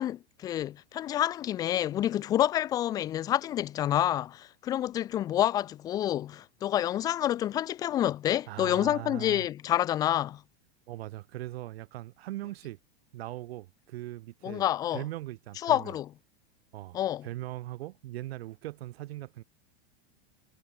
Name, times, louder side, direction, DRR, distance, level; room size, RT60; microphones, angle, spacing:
voice 1, 0.0-10.4 14.4-15.0 15.6-16.1 16.9-17.3, left 12 dB, 10° left, 0.3 m, -28 dB
voice 2, 8.5-9.5 10.9-12.8 13.1-14.6 14.9-15.9 16.7-19.4, right 16 dB, 70° right, 2.6 m, -40 dB
supercardioid pair, 160°, 32 cm